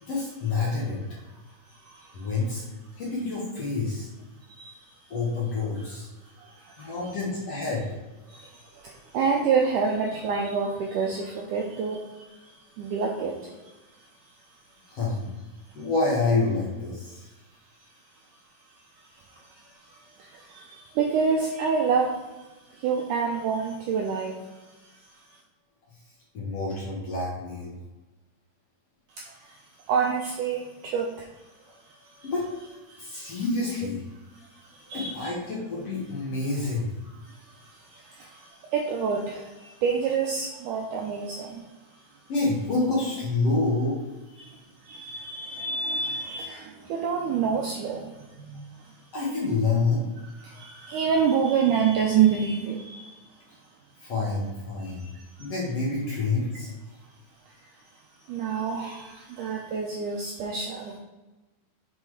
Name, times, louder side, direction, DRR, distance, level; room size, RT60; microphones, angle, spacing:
voice 1, 0.0-1.0 2.1-2.6 3.0-4.1 5.1-6.1 6.8-7.9 14.9-15.3 15.7-17.3 26.3-27.7 32.2-32.7 33.0-34.0 34.9-36.9 42.3-44.0 49.1-50.0 54.0-55.1 55.4-56.7 58.6-58.9, left 3 dB, 50° left, -4 dB, 2.1 m, -28 dB
voice 2, 6.4-6.9 8.3-12.3 12.8-13.5 19.3-19.6 20.2-24.3 29.2-29.6 29.9-31.3 32.2-32.3 32.9-33.4 34.6-35.3 37.2-41.6 44.4-44.6 44.8-48.7 50.4-53.2 54.8-55.1 55.4-55.5 58.3-61.0, right 6 dB, 80° right, 0 dB, 1.9 m, -28 dB
7.4 x 4.3 x 4.8 m, 1.1 s
omnidirectional pair, 4.5 m